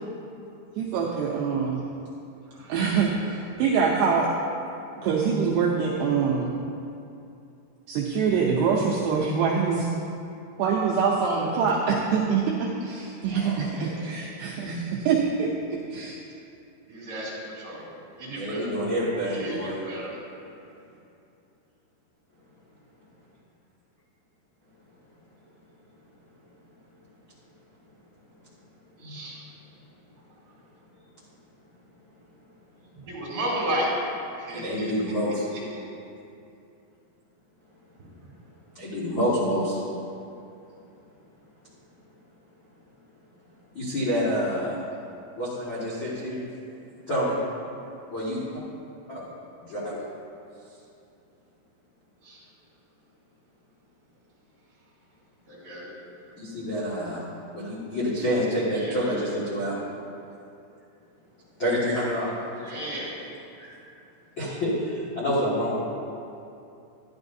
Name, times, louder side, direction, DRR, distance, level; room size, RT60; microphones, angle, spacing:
voice 1, 0.8-1.8 2.7-4.3 5.0-6.6 7.9-9.9 10.6-15.5 15.9-16.1, right 5 dB, 80° right, -3 dB, 2.4 m, -24 dB
voice 2, 2.5-2.8 13.2-14.1 16.9-18.7 19.2-20.2 29.0-29.4 32.9-34.0 34.4-34.9 35.2-35.9 38.0-38.1 52.2-52.4 55.4-55.9 56.3-56.4 58.7-59.5 62.6-63.2, right 1 dB, 30° right, -9 dB, 2.2 m, -34 dB
voice 3, 18.3-19.8 29.0-29.2 34.5-35.5 38.7-39.8 43.7-44.8 45.4-46.4 47.1-47.4 48.1-48.6 49.1-49.2 49.6-50.0 56.4-57.2 57.5-59.8 61.6-62.3 63.6-63.8 64.4-65.8, equal, 80° left, -10 dB, 1.1 m, -27 dB
12.0 x 11.5 x 2.7 m, 2.7 s
omnidirectional pair, 5.6 m